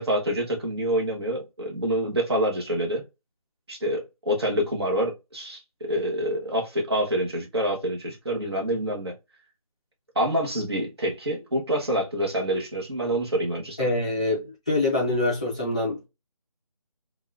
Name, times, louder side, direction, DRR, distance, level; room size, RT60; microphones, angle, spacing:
voice 1, 0.0-3.0 3.7-9.1 10.1-13.8, equal, 45° right, 1.2 m, -27 dB
voice 2, 13.8-16.1, left 2 dB, 10° left, 0.6 m, -25 dB
4.0 x 2.4 x 2.4 m
figure-of-eight pair, 175°, 19 cm